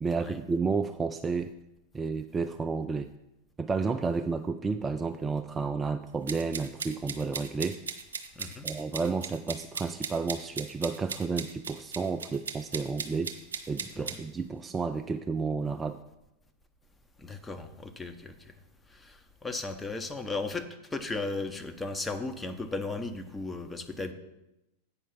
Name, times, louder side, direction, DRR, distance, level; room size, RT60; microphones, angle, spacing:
voice 1, 0.0-1.5 1.9-3.1 3.6-7.8 8.6-13.3 13.7-16.0, right 4 dB, 15° right, 7 dB, 0.3 m, -31 dB
sound 1, 6.3-14.2, right 5 dB, 70° right, 0.8 m, -37 dB
voice 2, 8.4-8.7 14.0-14.2 17.2-18.5 18.9-20.6 20.9-24.1, left 3 dB, 10° left, 6 dB, 0.8 m, -36 dB
8.5 x 5.5 x 5.5 m, 0.93 s
figure-of-eight pair, 90°, 0 cm